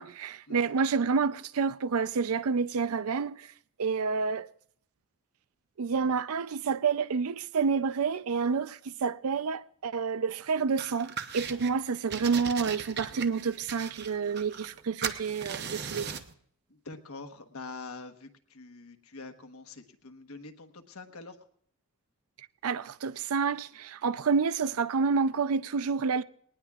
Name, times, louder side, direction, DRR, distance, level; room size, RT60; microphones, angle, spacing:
voice 1, 0.0-3.5 3.8-4.5 5.8-16.2 22.6-26.2, right 5 dB, 85° right, 0.5 m, -29 dB
sound 1, 10.8-11.7 12.1-14.8 15.0-16.3, right 7 dB, 50° right, 0.8 m, -38 dB
voice 2, 16.7-21.4, left 3 dB, 80° left, 1.3 m, -45 dB
21.0 x 19.0 x 2.4 m
head